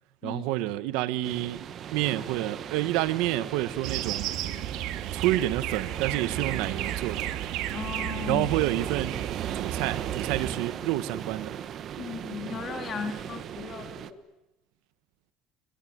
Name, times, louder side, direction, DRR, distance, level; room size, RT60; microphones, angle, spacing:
voice 1, 0.2-1.6 1.9-4.3 5.1-7.3 8.3-9.2 9.5-11.6, right 15 dB, 85° right, 1.3 m, -28 dB
sound 1, 1.2-14.1, right 9 dB, 45° right, 1.1 m, -38 dB
Birds In Rain, 3.8-10.5, right 12 dB, 70° right, 1.8 m, -33 dB
voice 2, 7.7-8.5 12.0-14.2, left 6 dB, 35° left, 3.4 m, -36 dB
29.5 x 21.0 x 9.5 m
cardioid pair, 145°, 0 cm